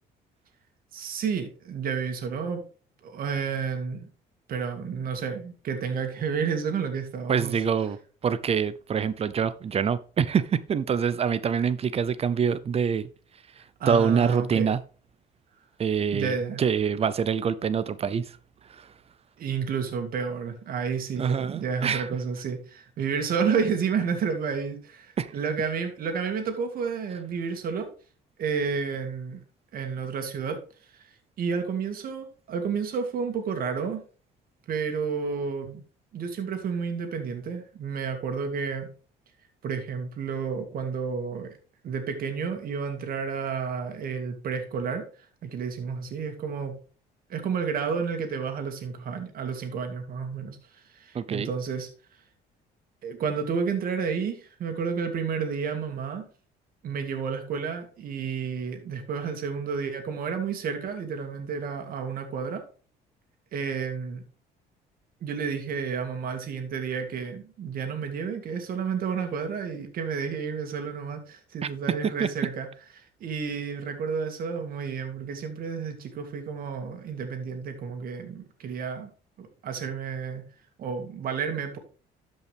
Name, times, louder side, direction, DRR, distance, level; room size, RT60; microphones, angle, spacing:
voice 1, 0.9-2.6 3.0-4.1 4.5-7.6 13.8-14.7 16.1-16.6 19.4-27.9 28.4-29.4 29.7-30.6 30.9-31.1 31.4-34.0 34.7-35.8 36.1-38.9 39.6-41.6 41.8-45.0 45.4-46.8 47.3-51.9 53.0-56.2 56.8-62.6 63.5-64.2 65.2-72.7 72.9-79.1 79.4-80.4 80.8-81.8, right 6 dB, 60° right, 2.1 m, -31 dB
voice 2, 7.3-8.0 8.2-13.1 13.9-14.8 15.8-18.2 18.7-18.9 21.2-22.1 25.2-25.3 51.1-51.5 72.2-72.3, right 7 dB, 35° right, 0.6 m, -25 dB
12.5 x 5.5 x 3.5 m
cardioid pair, 110°, 17 cm